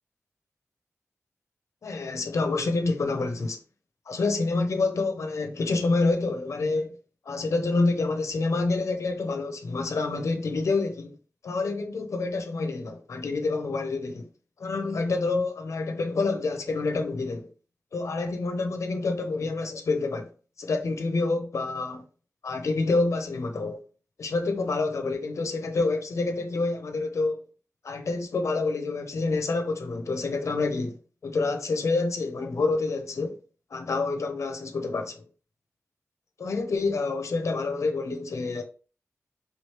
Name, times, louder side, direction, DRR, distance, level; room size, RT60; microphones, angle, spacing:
voice 1, 1.8-3.6 4.1-7.0 7.3-11.2 11.4-14.3 14.6-17.5 17.9-20.3 20.6-22.0 22.4-23.8 24.2-27.4 27.8-31.0 31.2-33.4 33.7-35.3 36.4-38.6, left 3 dB, 85° left, 0.7 m, -27 dB
4.8 x 3.2 x 3.2 m
wide cardioid pair, 85°, 5 cm